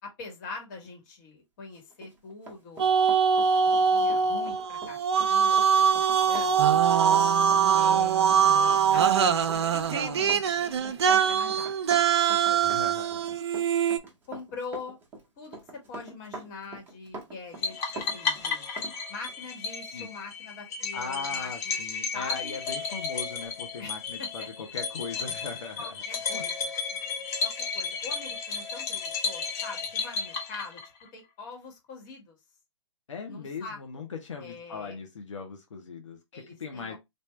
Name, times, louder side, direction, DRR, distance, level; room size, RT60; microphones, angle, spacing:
voice 1, 0.0-2.9 3.5-6.6 7.7-11.9 12.2-12.6 14.3-15.0 15.4-18.7 19.1-21.8 22.1-22.6 23.8-24.5 25.8-26.7 27.4-30.8 31.1-32.4 33.3-34.0 34.4-35.0 36.3-37.0, left 4 dB, 35° left, 1.7 m, -43 dB
Run, 1.9-19.0 19.3-19.4, right 3 dB, 10° right, 0.8 m, -44 dB
sound 1, 2.8-14.0, right 7 dB, 55° right, 0.6 m, -23 dB
voice 2, 12.6-13.4 19.9-20.1 20.9-25.9 26.3-26.4 33.1-37.0, left 5 dB, 75° left, 1.0 m, -39 dB
sound 2, 17.6-31.1, left 5 dB, 20° left, 0.6 m, -33 dB
3.6 x 2.7 x 3.3 m
hypercardioid pair, 140°, 16 cm